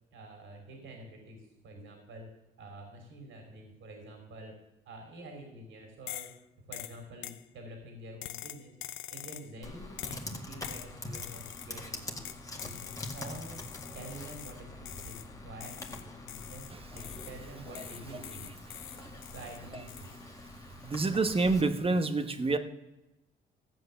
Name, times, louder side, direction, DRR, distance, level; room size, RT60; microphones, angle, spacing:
voice 1, 0.1-2.3 2.6-4.5 4.8-6.3 6.7-8.8 9.1-12.2 12.6-13.6 13.9-18.6 19.3-20.3, right 1 dB, 75° right, 3 dB, 3.3 m, -48 dB
sound 1, 6.1-6.4 6.7-7.4 8.2-9.5 10.0-10.3 10.6-11.8 12.2-14.6 14.9-15.3 15.6-17.4 17.7-19.6 19.9-20.2, left 13 dB, 85° left, 0.7 m, -44 dB
Computer keyboard, 9.6-21.6, left 1 dB, 15° left, 2.0 m, -44 dB
voice 2, 20.8-22.6, right 3 dB, 30° right, 9 dB, 1.2 m, -27 dB
14.0 x 7.9 x 6.8 m, 0.95 s
cardioid pair, 90°, 20 cm